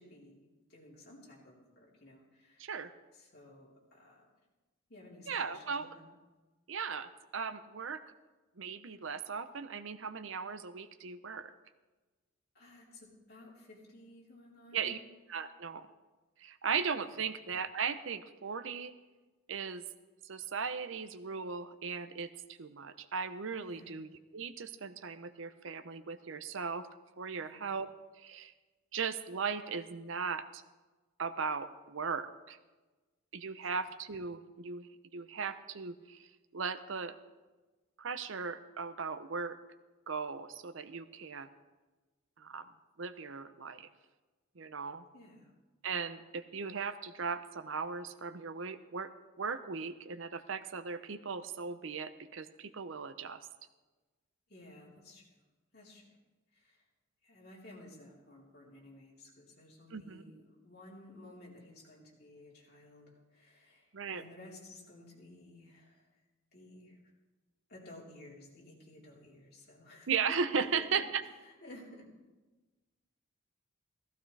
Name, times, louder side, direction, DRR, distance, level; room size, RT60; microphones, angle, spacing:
voice 1, 0.0-2.7 3.1-4.3 4.9-6.0 12.5-14.9 17.0-17.2 23.7-23.9 27.4-27.7 33.6-33.7 45.1-45.5 54.5-55.3 55.7-56.2 56.5-56.8 57.2-66.2 66.5-67.0 67.7-72.1, left 1 dB, 50° left, -4 dB, 3.8 m, -55 dB
voice 2, 2.6-2.9 5.3-5.9 6.7-8.0 8.6-11.5 14.7-15.0 15.3-15.9 16.4-18.9 19.5-19.8 20.3-24.1 24.3-26.9 27.2-27.9 28.2-28.5 28.9-30.6 31.2-32.6 33.3-36.2 36.5-37.1 38.0-39.6 40.1-41.5 42.4-42.7 43.0-43.9 44.6-45.0 45.8-49.1 49.4-53.4 59.9-60.2 63.9-64.2 70.1-71.2, right 5 dB, 70° right, 12 dB, 0.6 m, -37 dB
16.0 x 14.5 x 3.3 m, 1.2 s
head